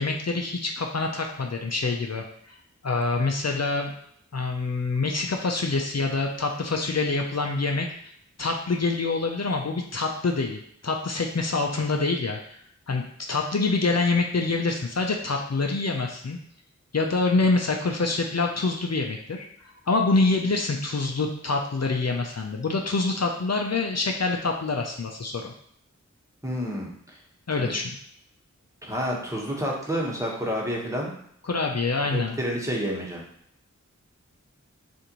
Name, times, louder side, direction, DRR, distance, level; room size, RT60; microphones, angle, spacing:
voice 1, 0.0-2.6 2.8-3.9 4.3-7.9 8.4-12.6 12.9-13.0 13.3-16.4 16.9-25.5 27.5-27.9 31.5-32.4, left 3 dB, 60° left, 2 dB, 0.6 m, -26 dB
voice 2, 26.4-27.2 27.6-27.7 28.8-31.1 32.1-33.2, equal, 10° right, -3 dB, 1.3 m, -29 dB
6.3 x 2.6 x 3.0 m, 0.67 s
wide cardioid pair, 45°, 30 cm